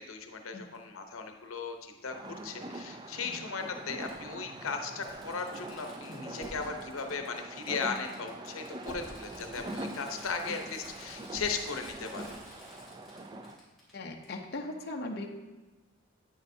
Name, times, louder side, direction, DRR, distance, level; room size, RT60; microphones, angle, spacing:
voice 1, 0.0-12.3, left 5 dB, 90° left, 5 dB, 0.8 m, -37 dB
Fireworks, 0.7-0.8 2.4-2.5 4.1-4.2 4.7-4.8 5.0-13.9 14.2-14.3, left 1 dB, ahead, 2.7 m, -52 dB
sound 1, 2.1-13.6, right 2 dB, 20° right, 0.4 m, -43 dB
voice 2, 13.9-15.4, left 2 dB, 50° left, 1 dB, 0.7 m, -39 dB
8.7 x 8.6 x 2.7 m, 1.2 s
head